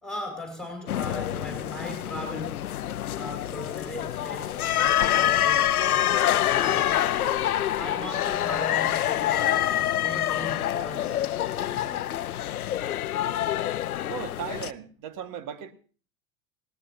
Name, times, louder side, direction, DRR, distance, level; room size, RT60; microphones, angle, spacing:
voice 1, 0.0-2.7 3.2-12.0, left 1 dB, ahead, 5.6 m, -39 dB
sound 1, 0.9-14.7, left 12 dB, 90° left, 0.6 m, -26 dB
voice 2, 14.1-15.7, right 8 dB, 50° right, 1.8 m, -36 dB
19.5 x 18.0 x 2.8 m
hypercardioid pair, 85°, 43 cm